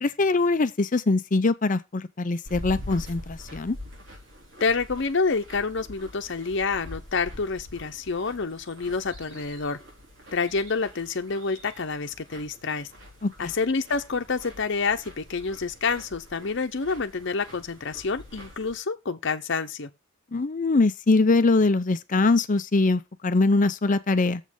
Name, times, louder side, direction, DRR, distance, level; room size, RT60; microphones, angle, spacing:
voice 1, 0.0-3.8 13.2-13.5 20.3-24.4, left 3 dB, 40° left, 0.6 m, -22 dB
sound 1, 2.4-18.8, left 1 dB, 65° right, 3.7 m, -44 dB
voice 2, 4.6-9.8 10.3-12.9 13.4-19.9, left 4 dB, 65° left, 0.9 m, -28 dB
7.4 x 5.3 x 5.3 m
head